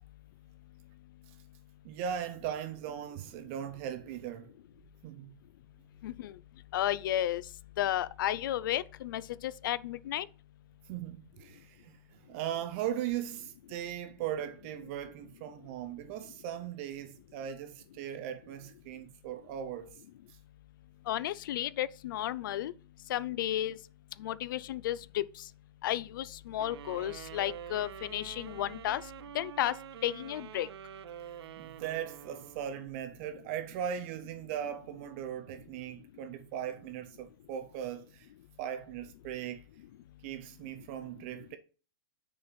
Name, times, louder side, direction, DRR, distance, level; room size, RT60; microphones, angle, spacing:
voice 1, 1.8-4.5 5.0-5.3 10.9-20.0 31.6-38.3 38.6-39.6 40.2-41.6, right 10 dB, 30° right, 0.4 m, -38 dB
voice 2, 6.7-7.4 7.8-10.3 21.1-22.7 23.1-23.8 24.2-25.2 25.8-29.0 29.3-29.7 30.0-30.7, left 12 dB, 55° left, 0.4 m, -33 dB
sound 1, 26.6-33.0, right 10 dB, 90° right, 0.5 m, -47 dB
6.4 x 4.4 x 4.1 m
supercardioid pair, 165°, 13 cm